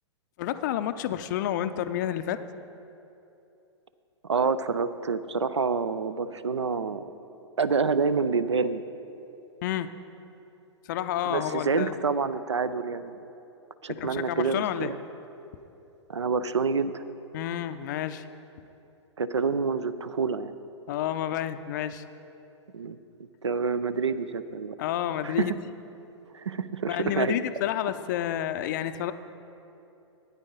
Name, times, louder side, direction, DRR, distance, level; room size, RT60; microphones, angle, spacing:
voice 1, 0.4-2.4 9.6-9.9 10.9-11.9 13.9-14.9 17.3-18.2 20.9-22.0 24.8-25.5 26.9-29.1, left 11 dB, 40° left, 11 dB, 0.5 m, -30 dB
voice 2, 4.3-7.0 7.6-8.8 11.3-13.2 13.8-15.0 16.1-17.0 19.2-20.5 22.7-23.0 23.4-24.8 25.2-25.5 26.3-27.4, right 5 dB, 75° right, 14 dB, 0.5 m, -27 dB
12.5 x 9.6 x 3.9 m, 2.8 s
figure-of-eight pair, 110°, 15 cm